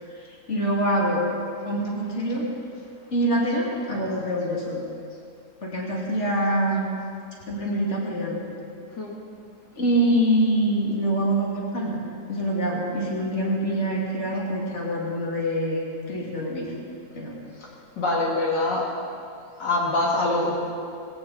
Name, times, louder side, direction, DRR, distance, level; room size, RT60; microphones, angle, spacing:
voice 1, 0.2-1.2 1.7-2.4 3.1-4.8 5.6-7.0 7.5-8.4 9.8-12.0 12.3-16.7 17.2-17.4, right 1 dB, 40° left, -3 dB, 2.9 m, -25 dB
voice 2, 18.0-18.9 19.6-20.6, left 2 dB, 75° left, -3 dB, 2.6 m, -24 dB
19.0 x 17.0 x 4.2 m, 2.4 s
omnidirectional pair, 1.9 m